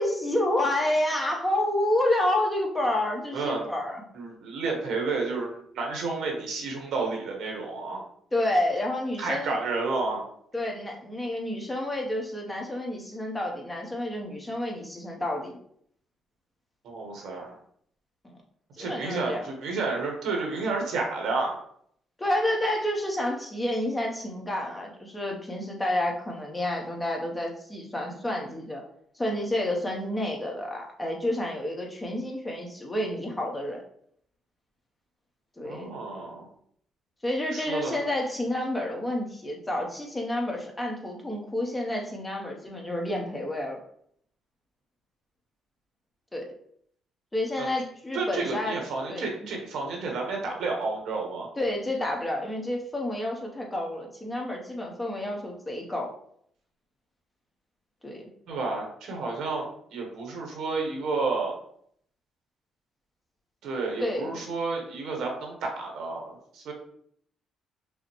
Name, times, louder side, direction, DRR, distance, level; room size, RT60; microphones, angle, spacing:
voice 1, 0.0-4.0 8.3-9.6 10.5-15.5 18.2-18.4 18.8-19.4 22.2-28.8 29.2-33.8 35.6-35.9 37.2-43.8 46.3-46.5 47.3-48.8 49.1-49.3 51.6-56.1 58.0-58.3 64.0-64.4, left 1 dB, 15° left, 0 dB, 0.9 m, -29 dB
voice 2, 3.3-3.7 4.1-8.0 9.2-10.2 16.8-17.5 18.8-21.5 35.6-36.5 37.5-38.0 47.6-47.7 48.1-51.5 58.5-61.6 63.6-66.7, right 3 dB, 80° right, 1 dB, 1.1 m, -31 dB
5.5 x 2.1 x 3.0 m, 0.66 s
cardioid pair, 90°, 0 cm